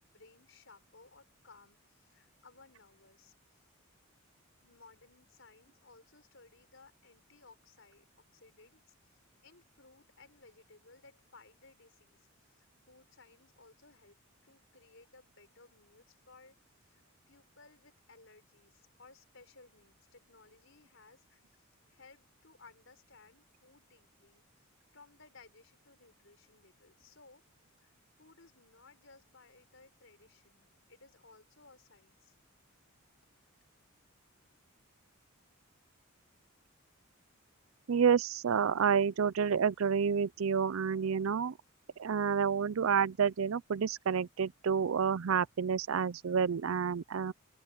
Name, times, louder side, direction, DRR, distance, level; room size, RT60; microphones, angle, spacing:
voice 1, 0.0-3.7 4.6-8.1 8.3-17.0 17.3-24.4 24.9-27.4 27.8-32.4, left 3 dB, 65° left, 5.2 m, -60 dB
voice 2, 37.9-41.6 42.0-47.3, right 6 dB, 75° right, 0.5 m, -29 dB
open air
head